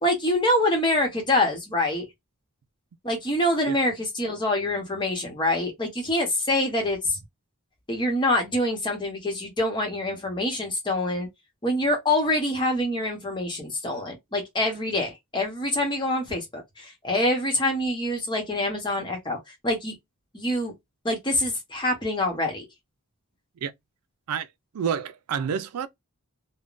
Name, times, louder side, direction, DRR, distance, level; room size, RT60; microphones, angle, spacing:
voice 1, 0.0-2.0 3.0-7.2 7.9-11.3 11.6-19.4 19.6-19.9 20.3-20.7 21.0-22.6, left 1 dB, 20° left, 1.0 m, -25 dB
voice 2, 24.7-25.9, right 7 dB, 85° right, 0.4 m, -28 dB
3.5 x 2.2 x 2.5 m
head